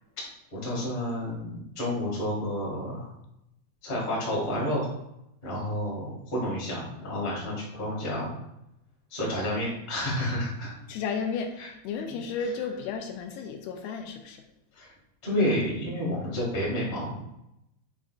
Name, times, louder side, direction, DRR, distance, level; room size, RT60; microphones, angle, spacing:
voice 1, 0.5-3.1 3.8-4.9 5.4-8.3 9.1-10.7 11.6-11.7 12.1-12.2 14.7-14.9 15.2-17.2, left 1 dB, 20° left, -6 dB, 1.4 m, -30 dB
voice 2, 10.9-14.4, left 5 dB, 85° left, 4 dB, 2.6 m, -33 dB
7.1 x 5.3 x 2.5 m, 0.82 s
omnidirectional pair, 4.6 m